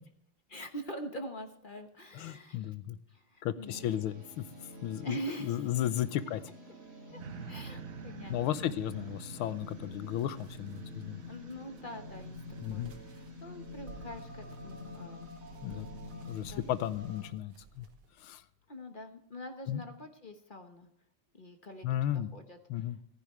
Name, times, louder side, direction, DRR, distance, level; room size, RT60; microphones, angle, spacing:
voice 1, 0.5-2.7 3.1-3.8 5.0-5.7 7.1-7.2 7.5-8.8 11.3-12.4 12.7-15.3 15.7-15.9 16.4-16.6 18.7-20.9 21.3-21.9 22.1-22.6, equal, 35° left, 5 dB, 0.9 m, -44 dB
voice 2, 2.1-3.0 3.4-4.5 4.8-6.4 8.3-11.2 12.6-12.9 15.6-15.9 16.3-17.9 18.2-18.4 19.7-19.8 21.8-22.3 22.7-23.0, left 11 dB, 75° left, 14 dB, 1.6 m, -34 dB
sound 1, 3.7-17.3, left 1 dB, 30° right, 2.4 m, -47 dB
sound 2, 7.2-14.6 15.1-15.2, right 9 dB, 60° right, 0.9 m, -51 dB
sound 3, 9.0-18.3, right 5 dB, 75° right, 2.1 m, -56 dB
15.0 x 15.0 x 3.2 m, 0.69 s
omnidirectional pair, 2.4 m